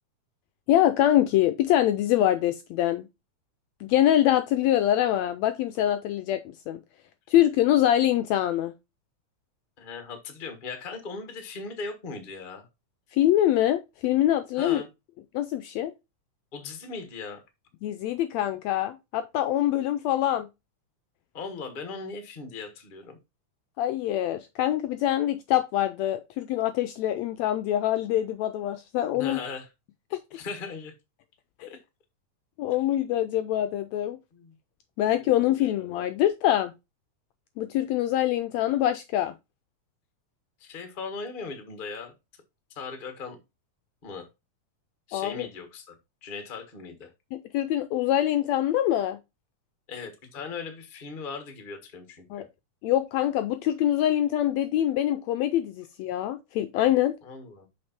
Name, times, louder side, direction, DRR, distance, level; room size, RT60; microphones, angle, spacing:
voice 1, 0.7-3.1 3.8-6.8 7.3-8.7 13.1-14.8 15.3-15.9 17.8-20.5 23.8-29.4 30.1-30.2 31.6-31.7 32.6-34.2 35.0-36.7 37.6-39.3 45.1-45.5 47.3-49.2 52.3-52.5 52.8-57.1, left 12 dB, 80° left, 1.6 m, -24 dB
voice 2, 9.8-12.7 14.5-14.9 16.5-17.4 21.3-23.2 29.1-29.7 30.3-30.9 31.7-31.8 34.3-34.5 35.3-35.9 40.6-42.1 42.7-43.4 44.0-44.3 45.1-47.1 49.9-52.5 57.2-57.7, left 4 dB, 40° left, 0.7 m, -38 dB
6.4 x 5.2 x 4.3 m
omnidirectional pair, 3.5 m